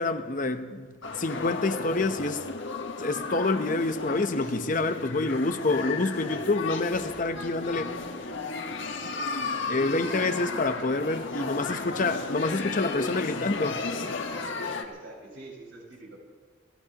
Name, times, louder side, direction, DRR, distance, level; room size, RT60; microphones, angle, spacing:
voice 1, 0.0-2.5 3.0-7.9 9.0-13.8, left 3 dB, 40° left, 0.8 m, -28 dB
sound 1, 1.0-14.8, left 3 dB, 80° left, 1.4 m, -34 dB
voice 2, 4.3-4.6 8.0-8.1 9.9-10.6 14.8-16.2, right 2 dB, 90° right, 5.6 m, -46 dB
28.0 x 16.5 x 3.0 m
head